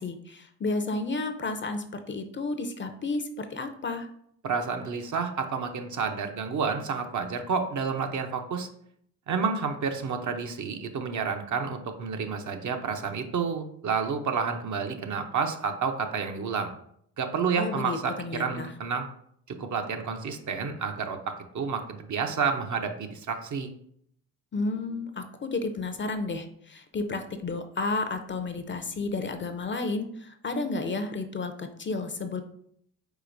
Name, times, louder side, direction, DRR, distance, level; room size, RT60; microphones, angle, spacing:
voice 1, 0.0-4.1 17.6-18.7 24.5-32.4, left 3 dB, 30° left, 7 dB, 0.6 m, -32 dB
voice 2, 4.4-8.7 9.3-16.7 17.2-19.1 19.6-23.7, right 5 dB, 50° right, 6 dB, 0.7 m, -30 dB
4.9 x 4.1 x 2.6 m, 0.68 s
supercardioid pair, 60°, 40 cm